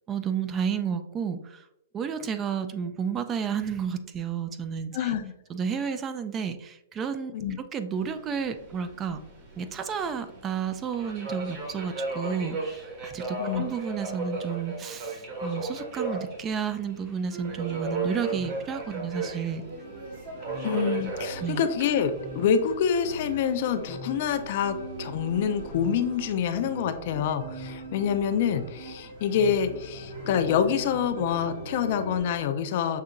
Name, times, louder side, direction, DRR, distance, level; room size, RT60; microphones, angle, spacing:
voice 1, 0.1-1.7 1.9-5.2 5.5-7.3 7.7-9.2 9.6-19.6 21.4-21.6, right 7 dB, 20° right, 10 dB, 0.3 m, -31 dB
voice 2, 4.9-5.3 7.3-7.6 13.4-13.7 20.6-33.0, left 8 dB, 55° left, 9 dB, 0.4 m, -26 dB
Subway metro underground, 7.9-26.4, right 3 dB, 45° right, 1.2 m, -37 dB
sound 1, 17.3-32.2, right 2 dB, 60° right, 1.3 m, -41 dB
6.4 x 2.8 x 2.4 m, 0.84 s
hypercardioid pair, 140°, 0 cm